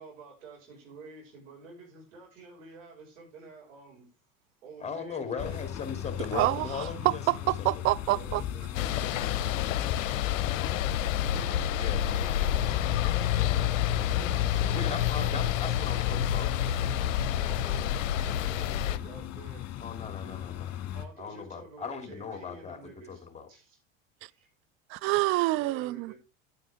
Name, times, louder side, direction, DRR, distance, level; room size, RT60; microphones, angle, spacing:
voice 1, 0.0-4.1 4.6-5.7 8.1-9.5 11.2-15.0 16.4-19.7 20.9-23.8 24.3-24.5 25.5-26.1, right 4 dB, 70° right, 5.3 m, -50 dB
voice 2, 4.8-7.2 7.6-7.7 11.7-12.0 14.7-16.5 19.8-20.8 21.2-22.8 23.1-23.5, left 5 dB, 15° left, 2.6 m, -38 dB
sound 1, 5.4-21.1, left 10 dB, 40° left, 2.0 m, -38 dB
voice 3, 6.3-8.4 24.9-26.1, right 20 dB, 35° right, 0.4 m, -27 dB
sound 2, 8.7-19.0, left 10 dB, 70° left, 0.7 m, -28 dB
9.8 x 9.1 x 3.5 m
hypercardioid pair, 80°, 40 cm